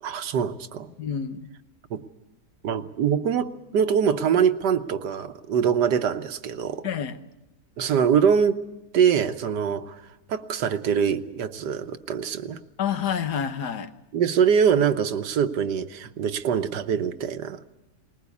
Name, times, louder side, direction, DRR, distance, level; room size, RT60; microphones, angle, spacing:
voice 1, 0.0-0.9 1.9-2.0 2.6-6.9 7.8-8.6 8.9-12.6 14.1-17.6, right 7 dB, 80° right, 1.6 m, -24 dB
voice 2, 1.0-1.5 6.8-7.2 12.8-13.9, left 8 dB, 75° left, 1.6 m, -28 dB
20.5 x 19.5 x 8.4 m
omnidirectional pair, 1.8 m